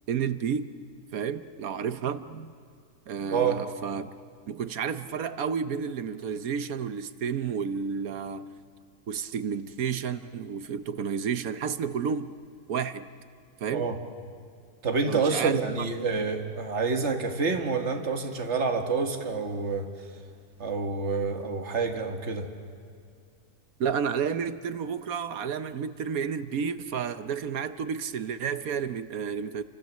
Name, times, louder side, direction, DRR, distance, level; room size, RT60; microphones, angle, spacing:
voice 1, 0.1-0.7 1.1-2.5 3.1-4.1 4.5-8.5 9.1-12.3 12.7-13.1 13.6-13.9 15.1-15.6 23.8-29.6, right 7 dB, 65° right, 12 dB, 1.3 m, -31 dB
voice 2, 3.3-3.6 13.7-14.0 14.8-19.9 20.6-22.5, right 4 dB, 45° right, 4 dB, 2.1 m, -28 dB
30.0 x 25.5 x 7.5 m, 2.3 s
omnidirectional pair, 1.7 m